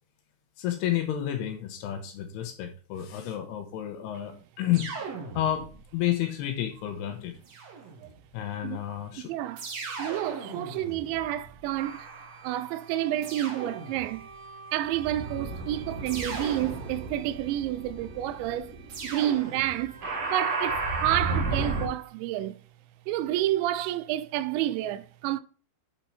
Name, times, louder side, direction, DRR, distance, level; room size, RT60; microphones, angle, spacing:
voice 1, 0.6-4.9 5.4-7.4 8.3-9.3, left 12 dB, 75° left, 2.6 m, -30 dB
sound 1, 4.7-5.9 7.5-8.3 9.6-11.9 13.2-14.3 16.1-17.4 18.9-20.1, right 4 dB, 65° right, 1.6 m, -39 dB
voice 2, 9.3-9.7 10.0-12.1 12.4-14.3 14.7-18.7 19.0-20.0 20.3-22.6 23.1-25.4, right 13 dB, 85° right, 2.8 m, -29 dB
sound 2, 11.8-12.5 13.3-21.9, right 3 dB, 45° right, 2.7 m, -34 dB
8.2 x 4.2 x 4.3 m
omnidirectional pair, 5.1 m